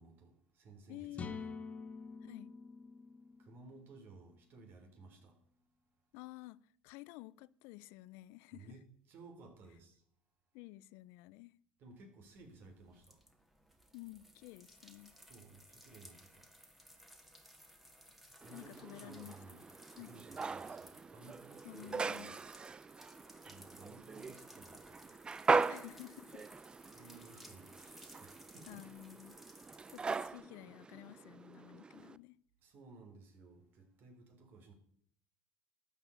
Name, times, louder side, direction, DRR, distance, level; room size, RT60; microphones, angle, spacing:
voice 1, 0.0-1.5 3.4-5.3 8.5-10.0 11.8-13.2 15.2-16.5 18.4-19.6 19.9-22.4 23.4-25.1 26.9-28.8 32.6-34.7, right 3 dB, 55° right, 3.7 m, -57 dB
voice 2, 0.9-1.4 2.2-2.5 6.1-8.8 10.5-11.6 13.9-15.2 18.5-19.4 20.0-20.1 21.6-22.4 25.7-26.5 26.9-27.0 28.7-29.4 29.9-32.4, left 17 dB, 75° left, 0.5 m, -52 dB
sound 1, 1.1-4.9, left 5 dB, 30° left, 1.5 m, -48 dB
sound 2, 12.3-30.3, equal, 5° right, 2.1 m, -60 dB
sound 3, 18.4-32.2, right 4 dB, 20° right, 0.5 m, -40 dB
12.5 x 8.3 x 8.3 m
supercardioid pair, 105°, 4 cm